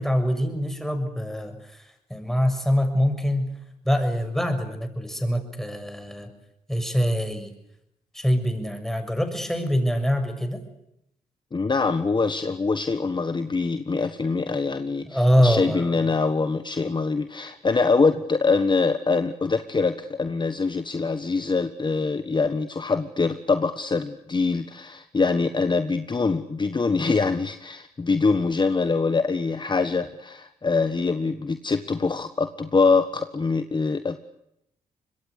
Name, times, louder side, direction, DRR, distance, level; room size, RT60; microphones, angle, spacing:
voice 1, 0.0-1.8 2.1-3.5 3.8-6.3 6.7-7.5 8.1-10.6 15.0-16.0, equal, 5° left, 7 dB, 6.6 m, -24 dB
voice 2, 11.5-34.2, left 4 dB, 35° left, 10 dB, 1.4 m, -24 dB
25.0 x 21.5 x 8.3 m, 0.80 s
supercardioid pair, 55°, 14 cm